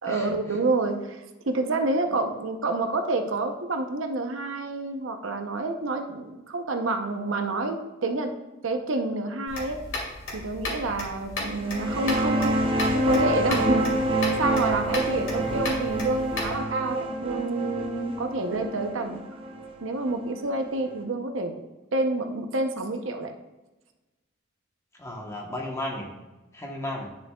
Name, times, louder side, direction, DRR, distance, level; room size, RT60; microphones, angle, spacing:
voice 1, 0.0-8.3 8.6-9.8 10.3-12.6 12.9-13.8 14.4-19.2 19.8-21.5 21.9-23.3, right 2 dB, 80° right, 5 dB, 0.8 m, -28 dB
sound 1, 9.5-16.6, left 2 dB, 75° left, 2.4 m, -35 dB
sound 2, 11.6-20.9, right 1 dB, 30° right, 0.8 m, -27 dB
voice 2, 24.9-26.1 26.5-27.1, left 1 dB, 15° left, 0 dB, 1.0 m, -34 dB
10.5 x 6.5 x 2.3 m, 1.1 s
head